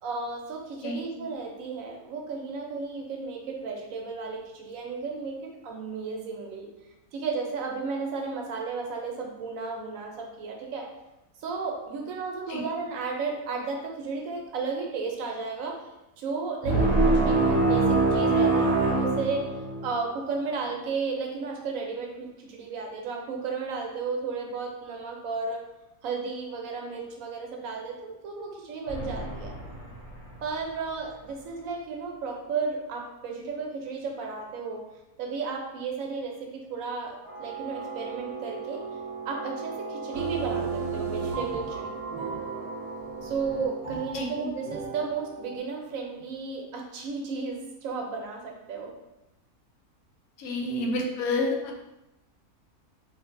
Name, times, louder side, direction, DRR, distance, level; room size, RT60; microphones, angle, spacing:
voice 1, 0.0-6.7 7.1-10.9 11.4-15.8 16.2-25.6 26.0-29.6 30.4-34.8 35.2-38.8 39.2-41.9 43.2-48.9 50.7-51.0, right 4 dB, 70° right, 1 dB, 1.0 m, -33 dB
sound 1, 16.6-20.0, right 3 dB, 50° right, 0.3 m, -23 dB
sound 2, 28.9-31.8 37.2-43.7, right 4 dB, 55° left, 1.2 m, -39 dB
sound 3, 40.1-45.6, right 5 dB, 85° right, 1.2 m, -35 dB
voice 2, 50.4-51.5, left 2 dB, 75° left, 1 dB, 1.0 m, -28 dB
3.2 x 3.1 x 2.5 m, 0.94 s
omnidirectional pair, 1.6 m